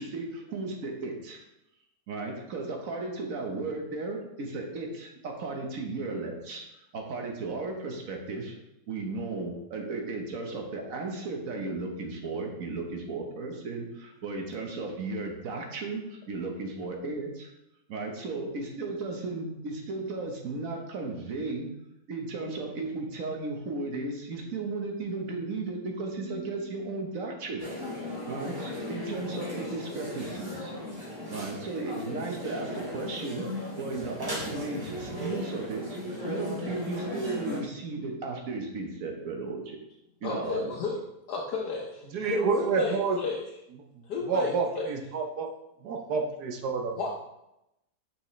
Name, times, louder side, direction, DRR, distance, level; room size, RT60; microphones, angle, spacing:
voice 1, 0.0-1.4 2.1-6.7 6.9-8.5 8.9-17.5 17.9-21.7 22.1-27.6 28.3-30.7 31.3-33.4 33.8-36.0 36.3-39.8 40.2-40.7, right 3 dB, 55° right, 2 dB, 1.4 m, -35 dB
sound 1, 27.6-37.6, left 1 dB, 20° right, 2.1 m, -37 dB
voice 2, 40.2-41.0 41.3-43.4 44.1-44.9 47.0-47.1, left 4 dB, 75° left, -2 dB, 1.3 m, -32 dB
voice 3, 42.1-43.2 44.3-45.5 45.8-47.1, right 5 dB, 70° right, 3 dB, 1.3 m, -28 dB
6.2 x 6.1 x 3.2 m, 0.87 s
omnidirectional pair, 1.8 m